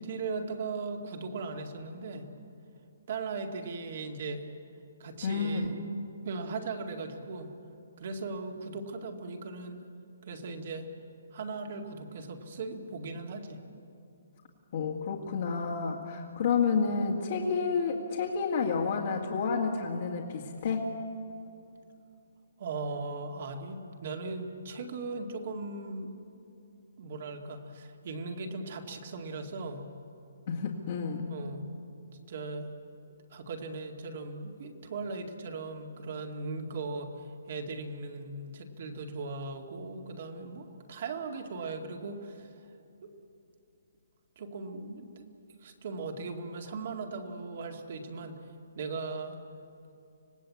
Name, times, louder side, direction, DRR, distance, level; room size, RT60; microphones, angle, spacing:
voice 1, 0.0-2.3 3.1-4.4 5.0-5.8 6.2-7.5 8.0-9.8 10.3-10.9 11.3-13.6 22.6-26.1 27.0-29.9 31.3-31.7 32.3-32.7 33.3-42.5 43.0-43.1 44.4-45.3 45.6-48.4 48.7-49.4, right 3 dB, 40° right, 4 dB, 2.1 m, -38 dB
voice 2, 5.2-5.7 14.7-20.9 30.5-31.3, left 5 dB, 40° left, -3 dB, 2.1 m, -30 dB
25.5 x 18.5 x 8.6 m, 2.7 s
hypercardioid pair, 175°, 0 cm